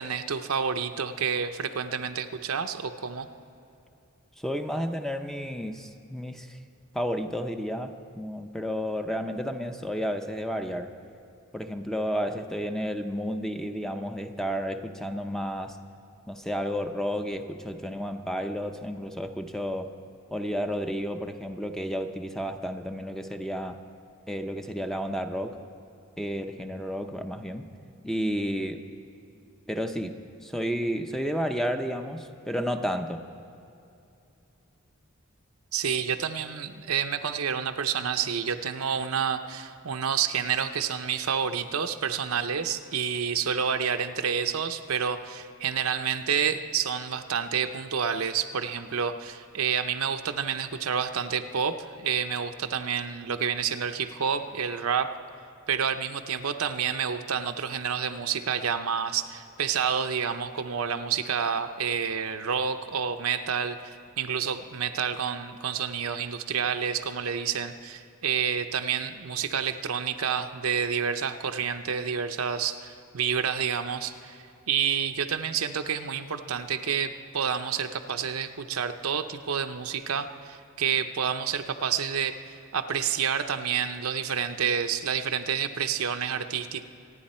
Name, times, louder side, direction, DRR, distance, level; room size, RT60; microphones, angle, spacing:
voice 1, 0.0-3.3 35.7-55.1 55.7-86.9, right 7 dB, 80° right, 8 dB, 0.7 m, -29 dB
voice 2, 4.4-6.6 6.9-10.9 11.5-15.8 16.3-19.9 20.3-23.8 24.3-25.6 26.2-27.7 28.0-28.9 29.7-33.3, equal, ahead, 6 dB, 0.6 m, -31 dB
26.0 x 9.9 x 4.3 m, 2.7 s
head